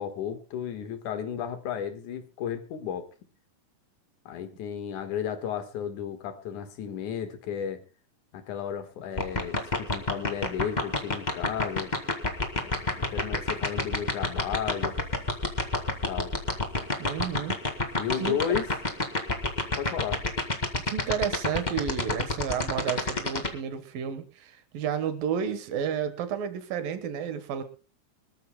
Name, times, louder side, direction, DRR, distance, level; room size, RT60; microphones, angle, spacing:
voice 1, 0.0-3.1 4.3-7.8 8.3-11.9 12.5-15.0 16.1-16.3 18.0-18.7 19.8-20.2, left 8 dB, 70° left, 8 dB, 2.8 m, -33 dB
sound 1, 9.2-23.5, left 2 dB, 25° left, 1.0 m, -26 dB
voice 2, 17.0-17.6 18.2-18.4 20.9-27.6, right 8 dB, 90° right, 10 dB, 3.1 m, -31 dB
25.0 x 14.0 x 2.2 m, 0.33 s
omnidirectional pair, 3.9 m